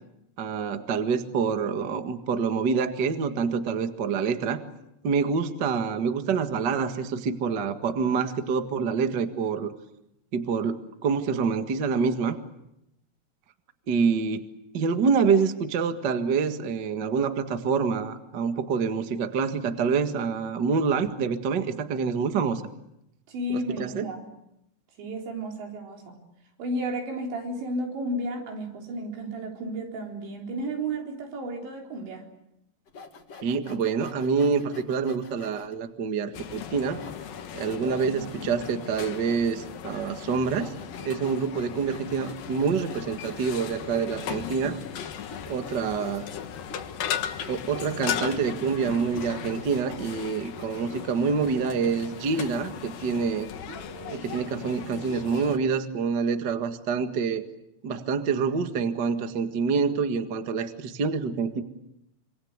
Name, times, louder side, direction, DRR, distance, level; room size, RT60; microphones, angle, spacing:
voice 1, 0.4-4.6 5.0-9.7 10.3-12.4 13.9-14.5 14.7-22.6 23.5-24.1 33.4-37.0 37.5-40.7 41.0-44.8 45.5-46.3 47.5-53.5 54.1-57.4 57.8-61.6, right 5 dB, 65° right, 7 dB, 1.0 m, -26 dB
voice 2, 23.3-24.2 25.0-26.2 26.6-32.3 37.8-38.4 53.7-54.4, right 1 dB, 85° right, 1 dB, 6.2 m, -33 dB
Sawing, 32.9-35.7 36.3-36.4 37.0-51.3, left 3 dB, 45° left, 2.7 m, -46 dB
sound 1, 36.3-55.6, left 9 dB, 65° left, 2.9 m, -37 dB
26.5 x 26.0 x 8.2 m, 0.83 s
omnidirectional pair, 5.0 m